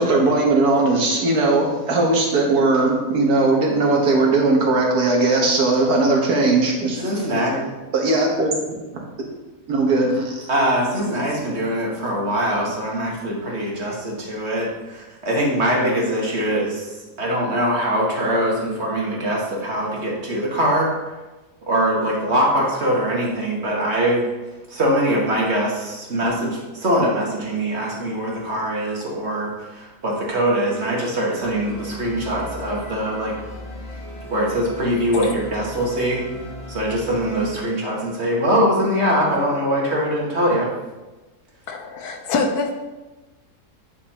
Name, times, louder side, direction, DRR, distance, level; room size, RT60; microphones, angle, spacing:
voice 1, 0.0-7.0 7.9-8.5 9.7-10.5, right 2 dB, 70° right, 0 dB, 1.7 m, -18 dB
voice 2, 7.0-7.6 10.5-20.9 21.6-24.3 24.7-33.3 34.3-36.2 36.7-40.7, equal, 45° right, -3 dB, 1.7 m, -22 dB
sound 1, 31.4-37.5, left 1 dB, 45° left, 2.0 m, -37 dB
voice 3, 41.7-42.7, left 3 dB, 75° left, 4 dB, 1.3 m, -24 dB
9.2 x 5.9 x 2.9 m, 1.1 s
omnidirectional pair, 1.7 m